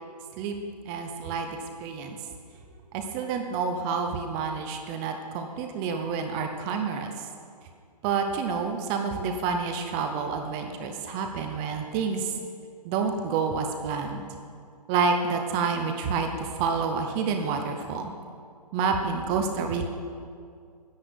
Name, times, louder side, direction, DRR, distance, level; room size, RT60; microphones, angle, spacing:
voice 1, 0.9-2.2 2.9-7.1 8.0-12.3 12.8-14.2 14.9-18.1 18.7-19.9, right 5 dB, 15° right, 5 dB, 0.6 m, -28 dB
11.5 x 10.5 x 7.9 m, 2.3 s
hypercardioid pair, 165°, 21 cm